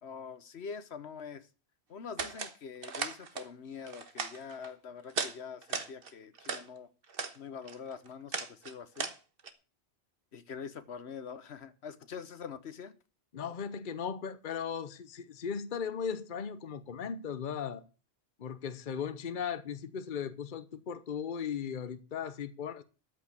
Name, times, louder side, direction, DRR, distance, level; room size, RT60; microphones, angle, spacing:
voice 1, 0.0-1.5 1.9-6.9 7.4-9.1 10.3-12.9, left 6 dB, 85° left, 1.3 m, -44 dB
sound 1, 2.2-2.5 2.8-3.5 3.9-4.7 5.1-5.4 5.6-6.7 7.0-7.4 7.7-9.5, right 5 dB, 60° right, 1.4 m, -37 dB
voice 2, 13.3-17.8 18.4-22.8, left 7 dB, 55° left, 1.0 m, -37 dB
13.5 x 5.7 x 8.2 m
omnidirectional pair, 1.1 m